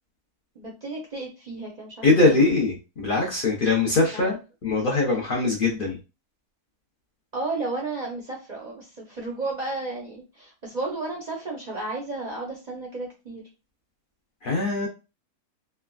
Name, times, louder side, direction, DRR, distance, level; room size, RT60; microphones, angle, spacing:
voice 1, 0.5-2.4 4.1-4.3 7.3-13.4, right 3 dB, 55° right, -2 dB, 0.5 m, -33 dB
voice 2, 2.0-6.0 14.4-14.9, left 3 dB, 55° left, -1 dB, 0.6 m, -22 dB
3.2 x 2.1 x 2.3 m, 0.29 s
omnidirectional pair, 1.6 m